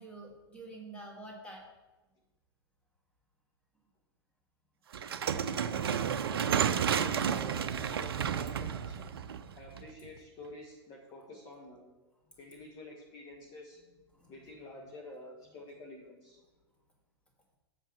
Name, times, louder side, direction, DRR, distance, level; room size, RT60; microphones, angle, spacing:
voice 1, 0.0-1.7 12.5-12.6 14.1-14.6, right 2 dB, 10° left, -1 dB, 2.2 m, -48 dB
sound 1, 4.9-10.1, right 8 dB, 60° right, 0.5 m, -31 dB
voice 2, 6.3-9.1 9.6-11.9 12.4-13.8 14.3-16.4, left 2 dB, 30° left, -1 dB, 1.4 m, -49 dB
8.1 x 5.9 x 6.2 m, 1.2 s
figure-of-eight pair, 100°, 14 cm